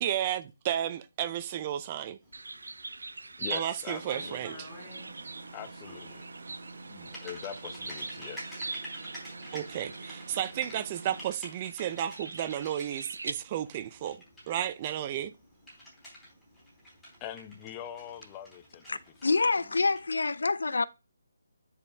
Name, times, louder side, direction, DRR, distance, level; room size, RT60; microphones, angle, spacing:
voice 1, 0.0-2.2 3.5-4.7 9.5-14.2 14.5-15.3, right 11 dB, 25° right, 0.5 m, -33 dB
Typing, 2.2-20.3, equal, ahead, 4.1 m, -50 dB
sound 1, 2.3-13.3, right 3 dB, 85° right, 0.7 m, -43 dB
voice 2, 3.4-4.6 5.5-6.3 6.8-8.8 17.2-18.9 19.4-19.5, left 10 dB, 20° left, 0.7 m, -43 dB
sound 2, 3.9-11.3, right 3 dB, 50° right, 1.6 m, -47 dB
voice 3, 18.9-20.9, left 3 dB, 80° left, 0.7 m, -27 dB
10.0 x 5.1 x 3.5 m
hypercardioid pair, 165°, 0 cm